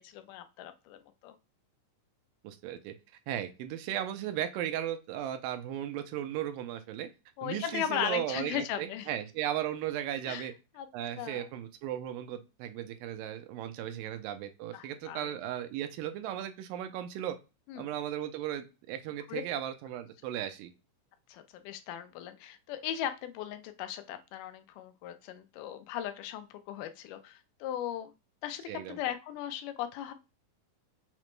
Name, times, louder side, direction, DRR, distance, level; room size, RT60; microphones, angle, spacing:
voice 1, 0.0-1.4 7.4-9.1 10.3-10.5 10.8-10.9 11.2-11.5 14.7-15.3 17.7-17.9 19.3-19.4 21.3-28.1 28.4-30.1, left 10 dB, 80° left, 9 dB, 2.0 m, -37 dB
voice 2, 2.4-3.0 3.3-7.1 7.4-10.5 10.9-17.4 17.8-20.7 28.7-29.0, right 11 dB, 90° right, 9 dB, 2.3 m, -36 dB
5.8 x 2.1 x 3.0 m, 0.28 s
omnidirectional pair, 3.8 m